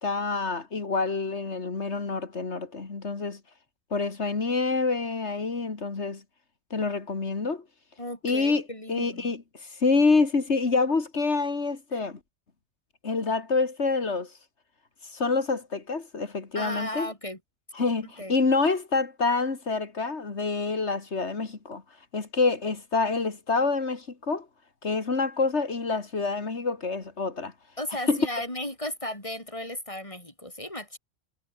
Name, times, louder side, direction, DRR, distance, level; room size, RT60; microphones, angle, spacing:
voice 1, 0.0-3.4 3.9-6.2 6.7-7.6 8.2-12.2 13.0-14.3 15.0-17.1 17.7-21.8 22.1-24.5 24.8-27.5 28.1-28.2, left 4 dB, 85° left, 2.7 m, -27 dB
voice 2, 8.0-9.3 16.5-17.4 18.2-18.4 27.8-31.0, left 1 dB, 30° left, 6.5 m, -35 dB
omnidirectional pair, 1.1 m